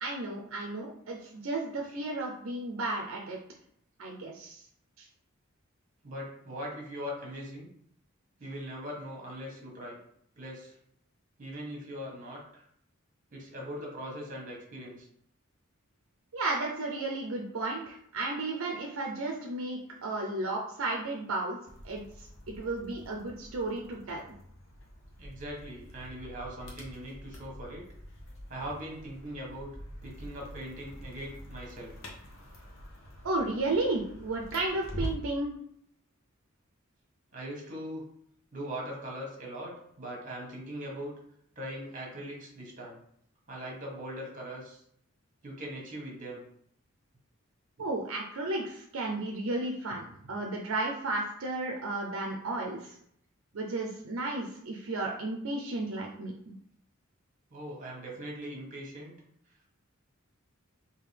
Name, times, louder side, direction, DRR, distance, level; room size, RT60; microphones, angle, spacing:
voice 1, 0.0-1.2 1.4-3.4 4.0-4.6 5.0-5.1 16.3-21.6 21.8-24.3 33.2-35.5 47.8-53.0 53.5-56.5, right 2 dB, 70° right, 0 dB, 0.5 m, -33 dB
voice 2, 6.0-7.7 8.4-10.0 10.4-10.7 11.4-12.6 13.3-15.1 25.2-27.8 28.5-29.7 30.0-31.9 37.3-38.0 38.5-41.1 41.5-43.0 43.5-44.8 45.4-46.4 57.5-59.1, equal, 40° right, -2 dB, 1.3 m, -40 dB
sound 1, 21.7-35.4, equal, 70° left, 0.9 m, -45 dB
3.7 x 2.8 x 3.3 m, 0.69 s
head